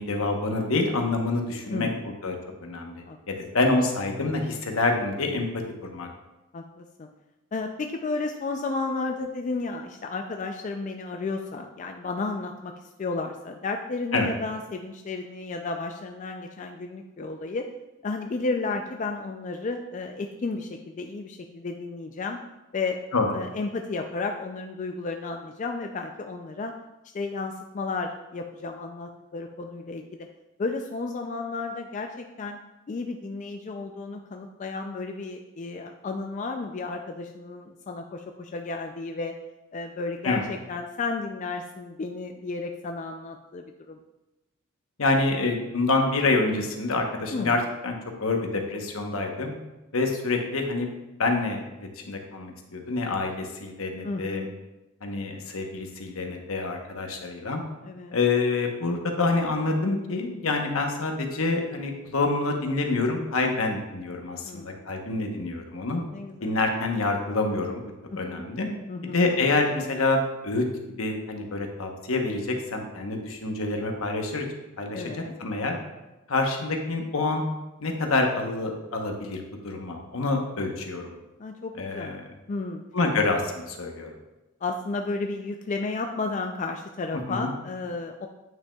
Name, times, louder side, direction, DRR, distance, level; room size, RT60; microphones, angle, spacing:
voice 1, 0.0-1.9 2.2-2.3 2.6-5.5 5.8-6.1 14.1-14.3 23.1-23.3 40.2-40.4 45.0-49.5 49.9-50.9 51.2-54.5 55.0-57.6 58.1-66.0 66.4-67.8 68.2-68.7 69.0-70.7 71.0-74.5 74.8-75.0 75.4-75.8 76.3-77.4 77.8-81.1 81.8-82.2 82.9-84.1 87.3-87.5, left 3 dB, 75° left, 3 dB, 1.0 m, -27 dB
voice 2, 1.7-2.1 3.1-3.2 6.5-7.1 7.5-12.7 13.0-17.7 18.0-22.4 22.7-23.0 23.3-26.7 27.1-30.3 30.6-32.6 32.9-39.4 39.7-44.0 47.3-47.5 54.0-54.5 57.8-58.2 64.4-64.9 66.1-66.5 68.1-68.4 68.9-69.2 74.9-75.3 81.4-82.8 84.6-88.3, left 3 dB, 35° left, 4 dB, 0.3 m, -33 dB
9.1 x 6.0 x 2.3 m, 1.0 s
head